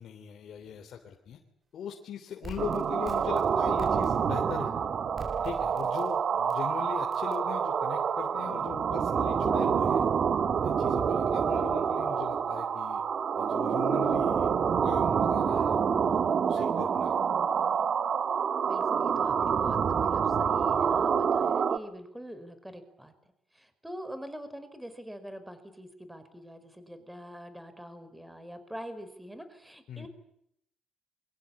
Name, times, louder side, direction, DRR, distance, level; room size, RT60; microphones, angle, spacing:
voice 1, 0.0-1.4 1.7-4.7 5.4-10.1 10.6-13.0 13.3-14.5 14.8-17.2 29.9-30.1, left 8 dB, 65° left, 2 dB, 3.2 m, -40 dB
sound 1, 2.4-4.5 5.2-6.1 6.5-6.6 7.1-7.4, right 3 dB, 35° right, 2.0 m, -44 dB
sound 2, 2.6-21.8, right 7 dB, 55° right, 1.4 m, -27 dB
voice 2, 16.6-16.9 18.6-23.1 23.5-30.1, equal, 5° right, 11 dB, 4.9 m, -44 dB
28.5 x 24.0 x 8.6 m, 0.74 s
cardioid pair, 90°, 0 cm